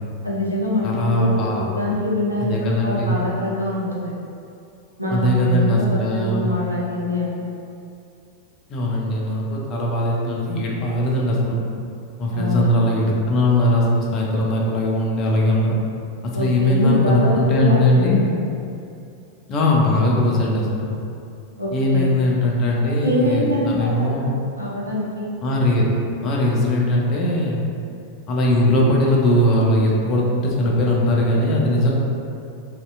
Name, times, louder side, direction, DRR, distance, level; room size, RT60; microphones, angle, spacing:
voice 1, 0.2-4.1 5.0-7.3 12.3-12.9 16.3-18.3 21.6-22.1 23.0-24.3 24.6-25.3, left 1 dB, 85° right, -6 dB, 0.5 m, -24 dB
voice 2, 0.8-1.6 2.4-3.2 5.1-6.5 8.7-11.6 12.2-15.8 16.2-18.2 19.5-20.9 21.7-24.3 25.4-25.9 26.2-27.6 28.3-31.9, left 1 dB, 35° left, -3 dB, 0.4 m, -20 dB
2.6 x 2.1 x 2.3 m, 2.6 s
figure-of-eight pair, 90°, 0 cm